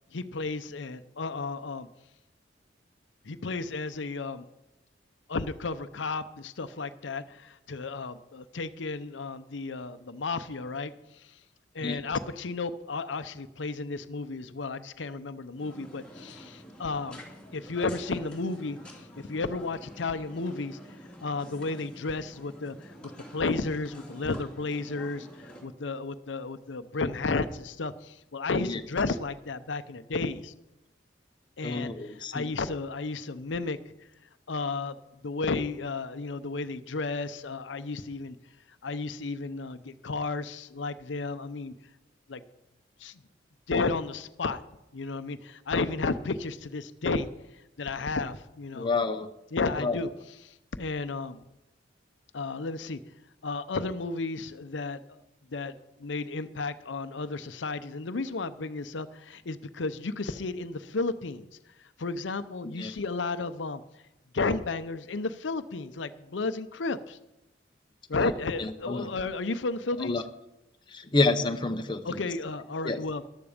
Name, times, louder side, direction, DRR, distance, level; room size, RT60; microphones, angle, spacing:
voice 1, 0.1-1.9 3.3-4.4 5.3-10.9 11.7-17.2 17.5-18.8 19.3-20.8 21.2-22.9 23.3-25.3 25.6-30.5 31.6-33.8 34.5-34.9 35.2-38.4 38.8-41.7 42.3-42.4 43.0-43.1 43.7-44.6 44.9-47.3 47.8-48.9 49.5-50.1 50.4-50.5 50.8-51.4 52.3-53.0 53.4-55.0 55.5-55.7 56.0-61.5 62.0-63.8 64.3-67.2 68.1-70.1 72.0-73.2, left 3 dB, 75° left, 11 dB, 0.7 m, -33 dB
sound 1, 15.6-25.6, equal, 5° left, 2.9 m, -48 dB
voice 2, 31.6-32.4 48.7-49.3 49.8-50.0 62.8-62.9 68.6-69.1 70.0-70.2 70.9-72.2 72.8-73.0, left 3 dB, 25° left, 6 dB, 0.8 m, -28 dB
14.0 x 11.5 x 5.1 m, 0.91 s
head